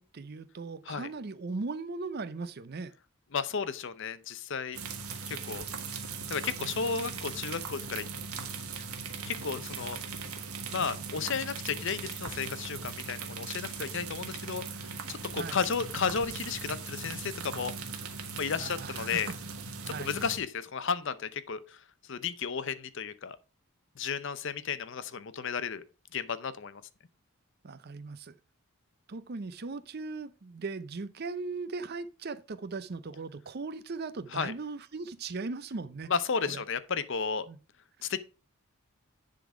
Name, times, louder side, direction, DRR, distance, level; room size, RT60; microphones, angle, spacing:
voice 1, 0.0-2.9 15.4-15.6 18.5-19.3 19.8-20.2 27.6-28.4 29.1-36.1 36.5-36.6 37.5-37.6 38.0-38.1, right 3 dB, 45° right, 0.5 m, -38 dB
voice 2, 3.3-4.8 5.3-5.6 6.3-8.0 8.7-8.8 9.3-10.0 10.7-17.7 18.4-19.3 19.9-21.8 22.1-23.4 24.0-25.8 26.1-26.8 34.3-34.5 36.1-37.5 38.0-38.2, left 6 dB, 55° left, 0.6 m, -33 dB
sound 1, 4.7-20.4, right 5 dB, 80° right, 1.4 m, -39 dB
10.5 x 3.9 x 4.8 m
head